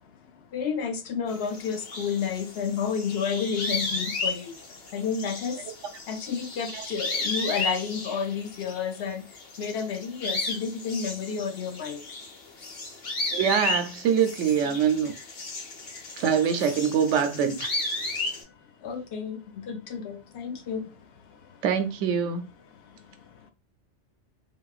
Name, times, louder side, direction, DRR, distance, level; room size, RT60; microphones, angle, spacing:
voice 1, 0.0-5.8 6.1-12.1 18.0-21.6 22.7-23.5, left 6 dB, 65° left, 0.8 m, -32 dB
sound 1, 1.3-9.0 9.3-18.4, left 3 dB, 85° left, 1.2 m, -34 dB
voice 2, 13.3-15.1 16.2-17.7 21.6-22.5, right 7 dB, 80° right, 0.9 m, -24 dB
3.5 x 2.2 x 2.4 m
omnidirectional pair, 1.2 m